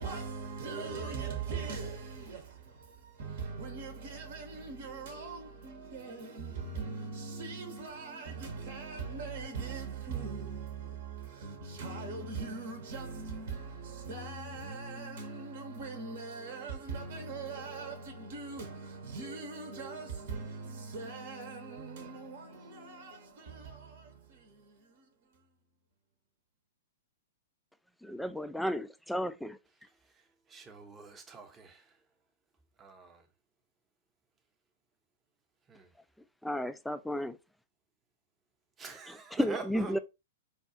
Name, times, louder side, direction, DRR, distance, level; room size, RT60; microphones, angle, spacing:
voice 1, 0.0-25.5, right 4 dB, 50° right, 0.8 m, -41 dB
voice 2, 28.0-29.6 36.4-37.4 39.1-40.0, left 1 dB, ahead, 0.3 m, -33 dB
voice 3, 30.5-31.8 32.8-33.2 35.7-35.9 38.8-40.0, right 4 dB, 20° right, 0.8 m, -44 dB
4.6 x 2.3 x 2.7 m
figure-of-eight pair, 105°, 0 cm